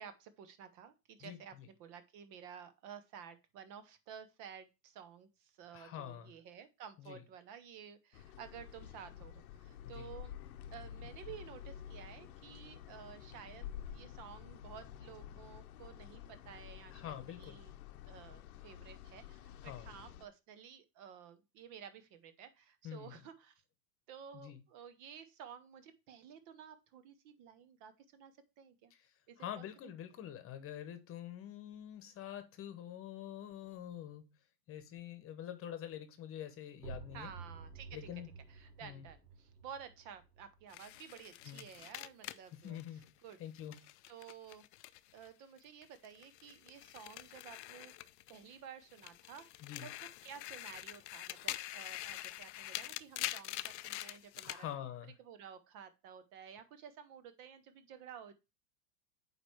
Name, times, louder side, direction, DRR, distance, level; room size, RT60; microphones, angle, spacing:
voice 1, 0.0-10.3 10.7-17.7 18.1-23.5 24.1-28.3 28.6-28.9 29.3-29.9 37.1-38.1 38.5-43.4 44.1-44.6 45.1-47.9 48.3-50.0 50.2-54.7 55.2-58.3, right 8 dB, 40° right, 0.9 m, -53 dB
voice 2, 5.7-6.3 7.0-7.2 9.8-10.1 16.9-17.6 19.7-19.9 22.8-23.1 24.3-24.6 29.4-34.2 34.7-37.3 37.9-38.3 38.8-39.0 41.5-41.6 42.6-43.0 43.4-43.8 49.6-49.9 54.4-55.1, left 11 dB, 25° left, 1.1 m, -46 dB
sound 1, 8.1-20.3, left 10 dB, 65° left, 0.9 m, -50 dB
sound 2, 36.8-42.3, right 4 dB, 90° right, 1.6 m, -53 dB
sound 3, 40.7-45.3 45.6-48.6 48.9-54.6, left 17 dB, 45° left, 0.5 m, -45 dB
8.9 x 3.2 x 4.6 m
hypercardioid pair, 115°, 48 cm